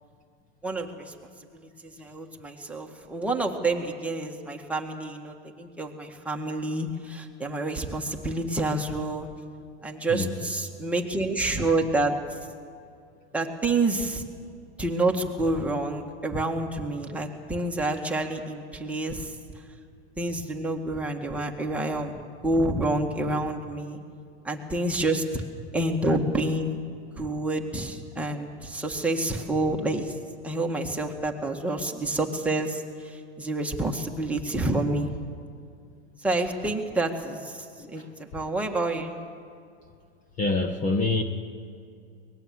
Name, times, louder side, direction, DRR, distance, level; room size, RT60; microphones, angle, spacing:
voice 1, 0.6-1.1 1.5-9.3 9.8-12.2 13.3-14.2 14.8-19.3 20.2-24.0 24.4-25.4 25.7-26.8 27.2-30.1 30.4-35.1 36.2-39.1, right 2 dB, 5° right, 1 dB, 1.7 m, -28 dB
voice 2, 10.1-10.5 37.8-38.1 40.4-41.2, left 3 dB, 25° left, 7 dB, 1.3 m, -26 dB
23.5 x 19.5 x 7.7 m, 2.3 s
hypercardioid pair, 135°, 33 cm